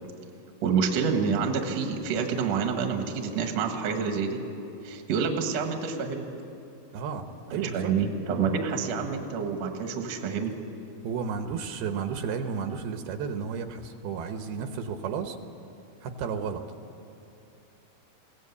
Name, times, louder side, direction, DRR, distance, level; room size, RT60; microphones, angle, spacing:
voice 1, 0.6-4.4 4.8-6.2 7.5-10.5, right 6 dB, 55° right, 5 dB, 2.2 m, -28 dB
voice 2, 6.9-7.9 11.0-15.4 16.0-16.6, right 6 dB, 80° right, 7 dB, 2.8 m, -32 dB
21.5 x 17.5 x 8.3 m, 2.8 s
omnidirectional pair, 4.6 m